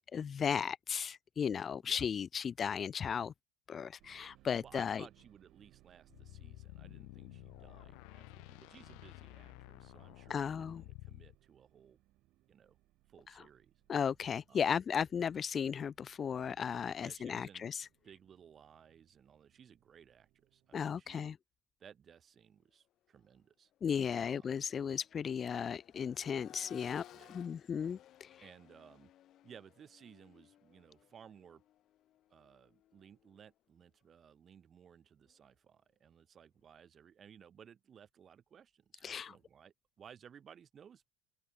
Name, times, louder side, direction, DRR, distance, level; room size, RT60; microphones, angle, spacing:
voice 1, 0.0-3.3 3.7-5.0 10.3-10.8 13.9-17.9 20.7-21.3 23.8-27.0 27.3-28.3 39.0-39.3, left 7 dB, 30° left, 0.4 m, -35 dB
sound 1, 4.0-21.0, right 17 dB, 60° right, 5.3 m, -68 dB
voice 2, 4.3-12.0 12.5-12.8 13.1-13.7 14.5-14.6 17.0-17.8 18.0-21.3 21.8-23.7 24.2-24.6 27.1-27.4 28.4-29.1 29.4-31.6 32.3-41.1, right 8 dB, 35° right, 4.8 m, -59 dB
sound 2, 6.1-11.3, left 32 dB, 75° left, 0.6 m, -52 dB
Accelerating revving vroom, 23.1-23.2 23.7-33.6 35.3-35.4, left 12 dB, 50° left, 3.4 m, -60 dB
open air
supercardioid pair, 120°, 0 cm